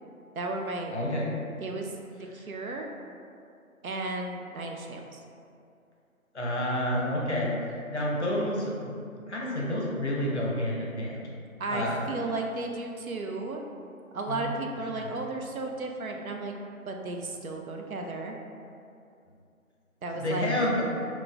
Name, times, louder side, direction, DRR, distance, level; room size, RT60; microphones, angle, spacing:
voice 1, 0.4-0.9 1.6-2.9 3.8-5.2 11.6-13.6 14.1-16.5 16.9-18.4 20.0-20.5, right 2 dB, 75° right, 2 dB, 0.5 m, -34 dB
voice 2, 0.9-1.3 2.3-2.4 6.3-8.9 9.3-11.2 11.7-12.0 14.3-14.5 14.9-15.1 20.1-20.8, left 1 dB, 55° left, -4 dB, 0.6 m, -29 dB
3.7 x 2.3 x 2.4 m, 2.5 s
figure-of-eight pair, 160°, 43 cm